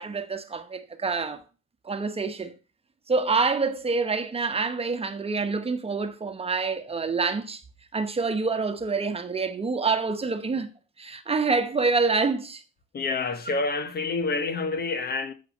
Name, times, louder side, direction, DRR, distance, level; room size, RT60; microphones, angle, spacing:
voice 1, 0.0-1.4 1.8-2.5 3.1-7.6 7.9-10.7 11.0-12.6, right 4 dB, 30° right, 1.1 m, -26 dB
voice 2, 12.9-15.3, left 3 dB, 55° left, 1.4 m, -28 dB
7.6 x 5.6 x 7.3 m
cardioid pair, 90°, 20 cm